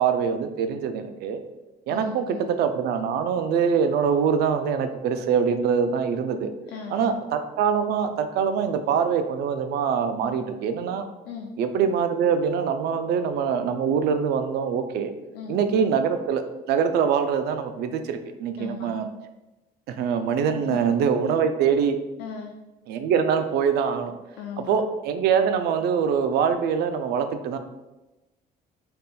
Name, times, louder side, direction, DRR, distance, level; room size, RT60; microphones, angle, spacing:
voice 1, 0.0-1.4 1.9-6.5 6.9-11.0 11.6-15.1 15.5-16.4 16.7-19.1 20.0-22.0 22.9-24.1 24.7-27.6, right 7 dB, 75° right, 8 dB, 0.4 m, -24 dB
voice 2, 1.9-2.5 6.7-7.2 11.2-11.5 15.3-15.6 18.6-18.9 20.7-20.8 22.2-22.5 24.4-24.7, left 7 dB, 85° left, 3 dB, 0.4 m, -37 dB
4.1 x 3.5 x 2.2 m, 1.0 s
cardioid pair, 110°, 17 cm